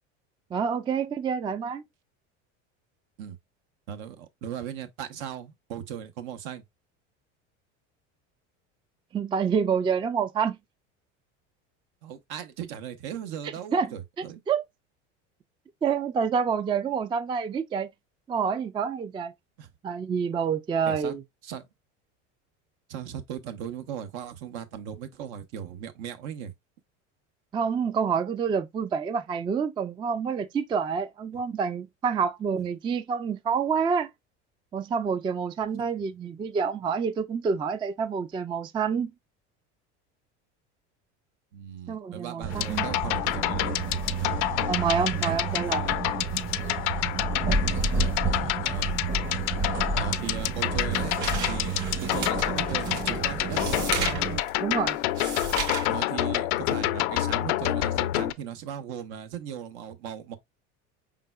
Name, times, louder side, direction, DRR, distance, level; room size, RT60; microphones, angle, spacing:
voice 1, 0.5-1.8 9.1-10.6 13.4-13.9 14.5-14.6 15.8-17.9 18.3-19.3 19.8-21.2 27.5-34.1 34.7-39.1 41.9-42.9 44.7-45.8 54.6-55.0, right 6 dB, 15° right, 0.3 m, -27 dB
voice 2, 3.9-6.6 12.0-14.4 19.6-19.7 20.9-21.1 21.4-21.7 22.9-26.5 35.8-35.9 41.5-43.8 48.3-49.0 50.0-51.1 51.4-51.7 52.0-53.9 55.9-60.4, right 9 dB, 70° right, 0.9 m, -38 dB
sound 1, 42.4-54.4, right 4 dB, 35° right, 1.1 m, -30 dB
sound 2, 42.5-58.3, left 15 dB, 70° left, 0.5 m, -28 dB
sound 3, 50.4-56.0, right 6 dB, 55° right, 1.7 m, -35 dB
4.7 x 3.7 x 2.2 m
hypercardioid pair, 90°, 36 cm